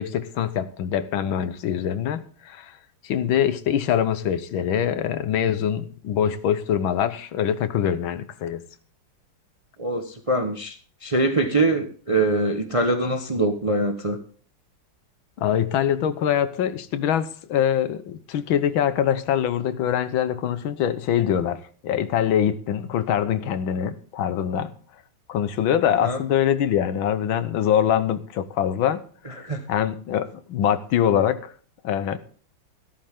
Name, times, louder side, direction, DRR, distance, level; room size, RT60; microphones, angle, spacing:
voice 1, 0.0-2.8 3.0-8.7 15.4-24.7 25.3-29.0 29.7-31.5 31.8-32.2, left 9 dB, 85° left, 13 dB, 1.8 m, -24 dB
voice 2, 9.8-10.8 11.0-14.2 25.9-26.2 29.2-29.6, right 2 dB, 20° right, 5 dB, 1.0 m, -23 dB
14.5 x 13.0 x 3.7 m, 0.43 s
omnidirectional pair, 2.1 m